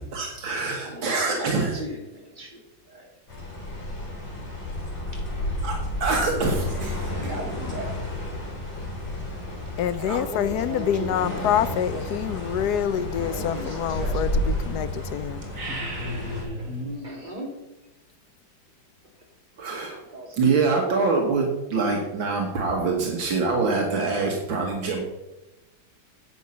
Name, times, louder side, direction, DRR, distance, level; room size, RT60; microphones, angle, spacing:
voice 1, 0.1-1.7 5.6-7.1 19.6-19.9 20.4-25.0, right 4 dB, 75° right, 1 dB, 2.2 m, -25 dB
voice 2, 0.6-3.1 5.1-5.2 6.2-6.6 7.2-8.0 9.8-12.1 13.2-14.3 16.4-17.5 19.9-20.7 23.9-24.2, equal, 25° right, 0 dB, 2.6 m, -38 dB
sound 1, 3.3-16.4, left 1 dB, 55° left, 4.8 m, -31 dB
voice 3, 9.8-15.4, left 9 dB, 70° left, 14 dB, 1.0 m, -26 dB
sound 2, 15.4-17.0, equal, 40° right, 2.6 m, -33 dB
10.0 x 8.1 x 5.6 m, 0.99 s
omnidirectional pair, 2.1 m